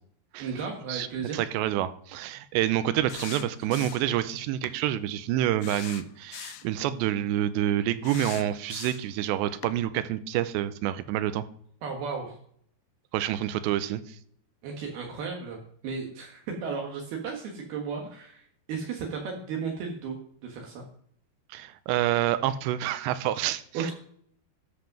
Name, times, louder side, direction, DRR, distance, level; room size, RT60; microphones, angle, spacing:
voice 1, 0.4-1.4 11.8-12.4 14.6-15.6 15.8-20.2 20.4-20.8 23.7-23.9, right 5 dB, 70° right, 1 dB, 3.1 m, -34 dB
voice 2, 1.3-11.4 13.1-14.2 21.5-23.9, right 12 dB, 90° right, 13 dB, 2.9 m, -28 dB
sound 1, 3.1-4.2 4.6-4.8 5.6-6.7 8.0-9.2 9.6-9.8, left 13 dB, 80° left, 2.4 m, -41 dB
13.5 x 5.2 x 5.9 m, 0.62 s
omnidirectional pair, 5.0 m